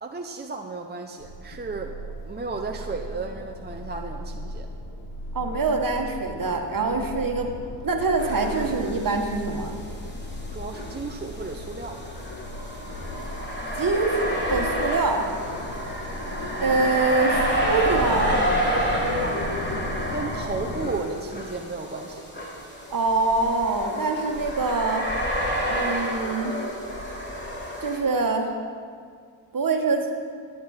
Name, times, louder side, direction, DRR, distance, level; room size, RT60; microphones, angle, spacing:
voice 1, 0.0-4.7 10.5-12.0 20.1-22.2, right 3 dB, 20° right, 2 dB, 0.6 m, -34 dB
sound 1, 1.2-20.9, left 1 dB, 55° left, 1.4 m, -36 dB
voice 2, 5.3-7.5 7.8-9.8 13.8-15.3 16.6-18.4 22.9-25.1 25.7-26.6 27.8-28.5 29.5-30.1, right 3 dB, 45° right, 3 dB, 1.3 m, -24 dB
sound 2, 8.2-9.3 9.6-9.7 10.7-28.0, equal, 20° left, 2.7 m, -29 dB
11.5 x 8.5 x 4.3 m, 2.1 s
cardioid pair, 50°, 48 cm